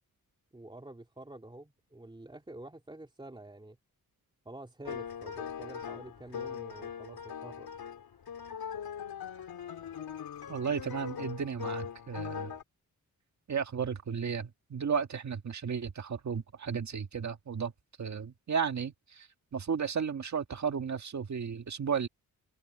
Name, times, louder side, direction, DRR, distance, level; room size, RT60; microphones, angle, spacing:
voice 1, 0.5-3.8 4.4-7.7, right 1 dB, 15° right, 2.9 m, -48 dB
sound 1, 4.8-12.6, left 8 dB, 80° left, 3.4 m, -41 dB
voice 2, 10.5-12.5 13.5-17.7 18.0-22.1, right 6 dB, 50° right, 1.8 m, -34 dB
wide cardioid pair, 165°, 36 cm